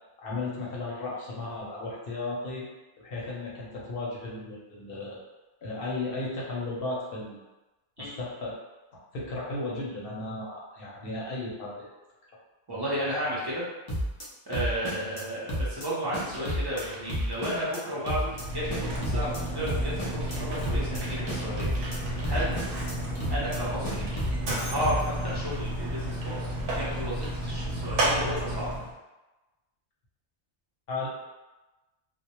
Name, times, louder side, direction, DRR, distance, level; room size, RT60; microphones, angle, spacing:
voice 1, 0.2-2.7 3.0-5.2 5.6-7.4 8.0-8.5 9.1-11.9 30.9-31.1, left 2 dB, 60° left, -4 dB, 0.7 m, -35 dB
voice 2, 12.7-13.6 14.5-22.6 23.3-24.1 24.7-28.7, equal, 35° right, -8 dB, 0.4 m, -33 dB
sound 1, 13.9-14.3 14.5-15.2 15.5-15.9 16.1-16.8 17.1-17.8 18.1-18.4 18.7-19.4 19.7-20.4 20.6-21.0 21.3-22.0 22.2-22.9 23.2-23.6 23.8-24.5 24.8-25.1, equal, 45° left, 0.3 m, -31 dB
sound 2, 16.3-19.7 20.1-27.3, right 1 dB, 90° right, 1.0 m, -48 dB
Mechanisms, 18.2-28.9, right 1 dB, 60° right, 0.8 m, -32 dB
2.1 x 2.0 x 2.8 m, 1.1 s
omnidirectional pair, 1.2 m